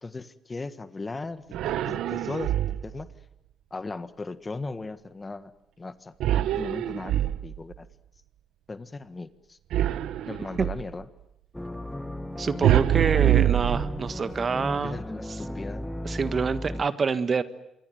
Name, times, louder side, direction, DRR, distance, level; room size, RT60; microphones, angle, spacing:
voice 1, 0.0-3.1 3.7-5.5 5.8-7.9 8.7-9.6 10.3-11.1 14.8-15.8, left 3 dB, 25° left, 12 dB, 1.6 m, -38 dB
sound 1, 1.5-3.0 6.2-7.8 9.7-10.9 12.6-14.3, right 12 dB, 85° right, 1.0 m, -25 dB
sound 2, 11.5-16.8, left 1 dB, 5° left, 1.9 m, -35 dB
voice 2, 12.4-15.0 15.3-15.4 16.0-17.4, right 5 dB, 40° right, 12 dB, 1.6 m, -26 dB
26.5 x 23.0 x 9.3 m, 0.85 s
cardioid pair, 90°, 0 cm